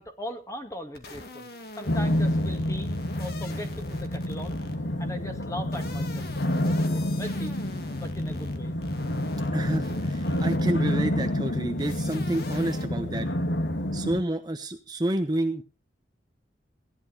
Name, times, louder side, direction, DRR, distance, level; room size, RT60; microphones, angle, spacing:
voice 1, 0.0-1.5 1.8-2.9 3.2-4.6 5.0-6.3 6.7-7.6 7.9-8.7, equal, 15° left, 6 dB, 2.0 m, -39 dB
sound 1, 1.0-5.0 5.6-10.8 11.8-12.9, left 2 dB, 55° left, 2.2 m, -42 dB
sound 2, 1.8-14.2, left 1 dB, 75° left, 2.2 m, -28 dB
voice 2, 9.5-13.3 13.9-15.6, right 1 dB, 20° right, 6 dB, 0.9 m, -29 dB
17.0 x 11.5 x 5.0 m, 0.33 s
head